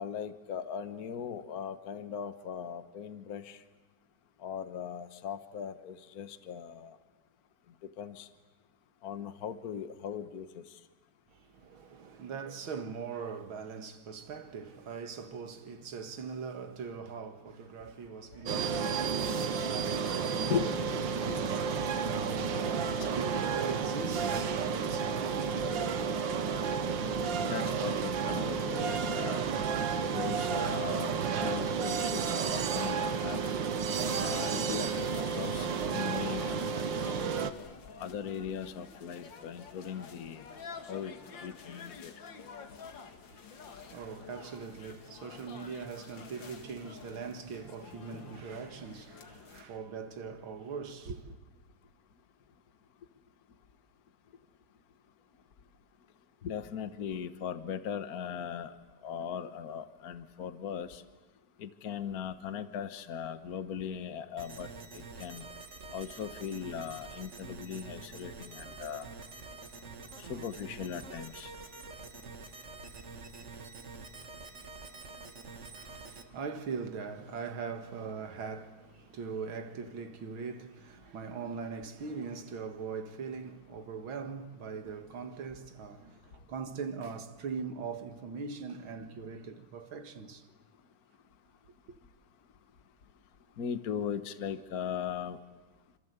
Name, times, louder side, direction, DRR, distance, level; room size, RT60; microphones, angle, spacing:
voice 1, 0.0-3.6 4.4-6.9 7.8-8.3 9.0-10.6 18.5-18.6 19.4-19.5 20.5-21.4 27.4-29.4 30.1-32.2 32.5-33.4 34.2-36.7 38.0-40.4 40.9-42.1 56.4-58.8 59.0-61.0 61.6-65.4 65.9-69.1 70.2-71.5 93.6-95.4, left 8 dB, 50° left, 1.6 m, -39 dB
voice 2, 11.3-20.8 21.1-26.0 43.3-51.4 75.7-90.5, right 5 dB, 90° right, 2.5 m, -41 dB
sound 1, 18.5-37.5, right 6 dB, 70° right, 1.9 m, -31 dB
sound 2, 32.2-49.6, left 5 dB, 70° left, 2.4 m, -49 dB
sound 3, 64.4-76.2, right 4 dB, 40° right, 2.0 m, -47 dB
27.5 x 26.5 x 8.2 m
omnidirectional pair, 2.2 m